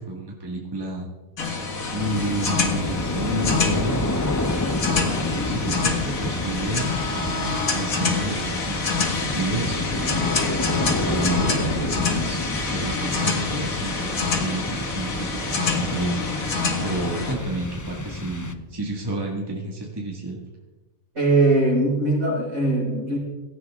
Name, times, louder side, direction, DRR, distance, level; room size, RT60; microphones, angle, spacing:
voice 1, 0.1-1.1 1.9-4.1 5.3-10.3 11.0-12.4 12.7-16.3 16.8-20.4, right 2 dB, 15° right, -2 dB, 2.0 m, -30 dB
sound 1, 1.4-17.3, left 4 dB, 85° left, 2.2 m, -27 dB
sound 2, 2.0-18.9, left 2 dB, 20° left, 0.6 m, -30 dB
voice 2, 21.1-23.2, right 2 dB, 60° right, -5 dB, 6.2 m, -20 dB
17.5 x 14.5 x 3.7 m, 1.2 s
omnidirectional pair, 1.4 m